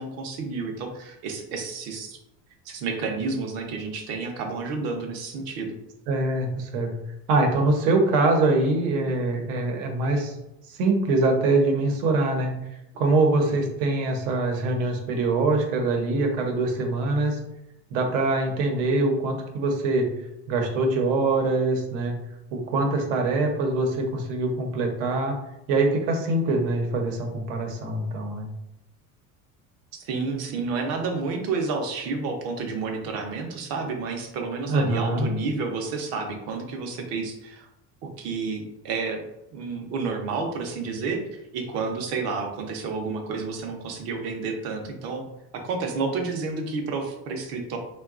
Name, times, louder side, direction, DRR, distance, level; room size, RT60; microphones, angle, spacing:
voice 1, 0.0-2.2 2.7-5.8 29.9-37.7 38.2-39.2 39.5-45.2 45.5-47.8, right 4 dB, 45° right, 3 dB, 0.5 m, -30 dB
voice 2, 6.1-6.9 7.3-10.3 10.7-12.5 12.9-17.4 17.9-20.1 20.5-22.2 22.5-25.3 25.7-28.5 34.7-35.3, right 2 dB, 85° right, 3 dB, 0.8 m, -23 dB
3.7 x 2.2 x 2.4 m, 0.87 s
cardioid pair, 175°, 36 cm